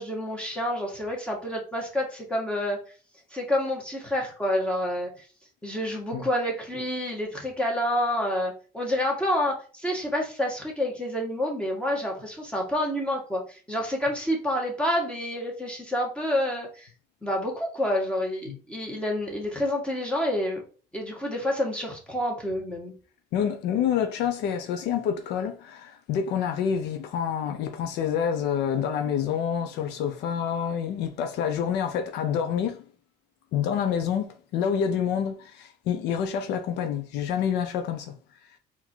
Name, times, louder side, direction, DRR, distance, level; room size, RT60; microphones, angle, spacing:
voice 1, 0.0-2.8 3.3-5.3 5.6-16.9 17.2-20.6 20.9-22.9, left 1 dB, 5° left, 1.8 m, -28 dB
voice 2, 23.3-32.8 33.5-38.1, left 8 dB, 85° left, 0.7 m, -27 dB
4.1 x 2.9 x 4.5 m
cardioid pair, 110°, 17 cm